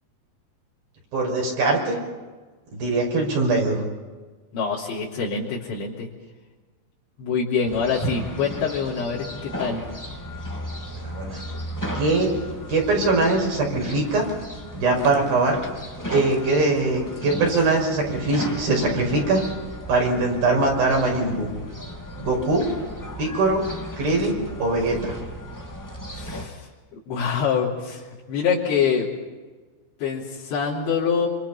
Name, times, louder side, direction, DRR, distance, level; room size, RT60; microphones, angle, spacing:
voice 1, 1.1-2.0 2.7-3.8 11.0-11.4 11.9-12.3 12.7-14.2 14.7-15.6 16.1-19.4 19.9-21.5 22.2-22.7 23.2-23.6 24.0-25.2, right 2 dB, 55° right, 0 dB, 7.4 m, -22 dB
voice 2, 4.5-6.1 7.2-9.9 26.1-26.7 27.1-29.1 30.0-31.3, left 6 dB, 80° left, -7 dB, 5.6 m, -25 dB
sound 1, 7.6-26.4, equal, 10° left, 1.0 m, -35 dB
26.5 x 26.5 x 5.8 m, 1.4 s
omnidirectional pair, 5.1 m